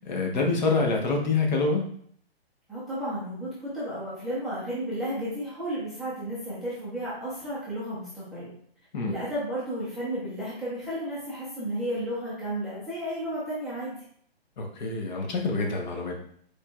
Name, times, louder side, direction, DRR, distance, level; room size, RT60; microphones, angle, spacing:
voice 1, 0.0-1.8 8.9-9.2 14.6-16.1, left 3 dB, 45° left, 1 dB, 1.0 m, -26 dB
voice 2, 2.7-8.5 9.1-13.9, right 1 dB, ahead, -11 dB, 0.7 m, -33 dB
4.9 x 4.3 x 2.4 m, 0.62 s
hypercardioid pair, 160°, 31 cm